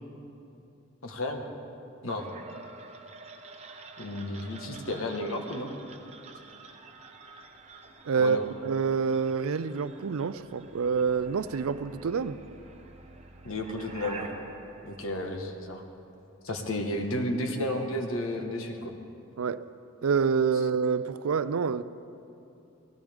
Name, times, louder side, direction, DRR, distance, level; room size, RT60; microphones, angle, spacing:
voice 1, 1.0-1.4 2.0-2.3 4.0-5.7 8.2-8.4 13.4-14.3 14.8-15.8 16.4-18.9, left 1 dB, 75° left, 1.4 m, -32 dB
sound 1, 2.1-16.0, right 3 dB, 30° right, 0.8 m, -48 dB
voice 2, 8.0-8.4 8.6-12.4 19.4-19.7 20.0-21.8, right 6 dB, 80° right, 0.4 m, -27 dB
18.5 x 16.5 x 3.6 m
head